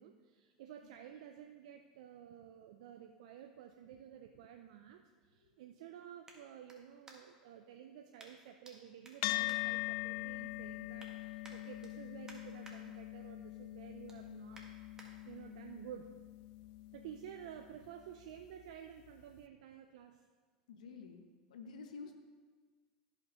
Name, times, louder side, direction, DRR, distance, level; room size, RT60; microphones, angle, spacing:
voice 1, 0.0-14.6 15.2-16.1 16.9-20.3 22.0-22.1, right 9 dB, 70° right, 5 dB, 0.5 m, -52 dB
sound 1, 6.2-7.5 8.2-8.7 9.0-10.3 10.7-11.1 11.4-12.8 13.2-13.4 13.8-15.1 15.6-15.7, right 2 dB, 15° right, 1.8 m, -59 dB
sound 2, 9.2-17.9, left 18 dB, 60° left, 0.3 m, -42 dB
voice 2, 20.7-22.1, left 5 dB, 80° left, 5 dB, 0.9 m, -51 dB
15.5 x 5.7 x 3.0 m, 1.5 s
hypercardioid pair, 85°, 4 cm